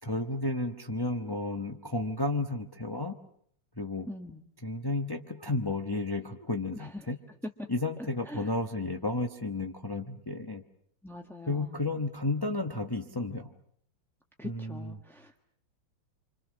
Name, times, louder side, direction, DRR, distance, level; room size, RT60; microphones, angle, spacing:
voice 1, 0.0-3.2 3.8-4.1 4.6-7.2 7.7-10.6 11.5-13.5 14.4-15.0, left 2 dB, 25° left, 4 dB, 0.5 m, -32 dB
voice 2, 4.1-4.4 8.3-8.4 11.0-11.8 14.4-15.4, left 1 dB, ahead, 2 dB, 0.9 m, -43 dB
28.0 x 26.0 x 6.4 m, 0.64 s
omnidirectional pair, 2.4 m